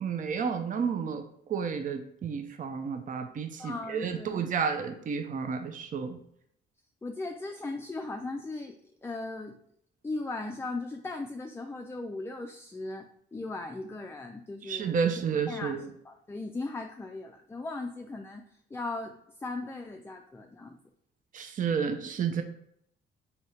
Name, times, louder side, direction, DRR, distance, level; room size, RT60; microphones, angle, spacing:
voice 1, 0.0-6.2 14.6-15.9 21.3-22.4, right 6 dB, 40° right, 6 dB, 0.6 m, -31 dB
voice 2, 3.6-4.4 7.0-9.6 10.0-15.1 15.5-18.4 18.7-20.8, left 2 dB, 10° left, 4 dB, 0.4 m, -38 dB
3.5 x 2.8 x 4.2 m, 0.70 s
cardioid pair, 90°, 20 cm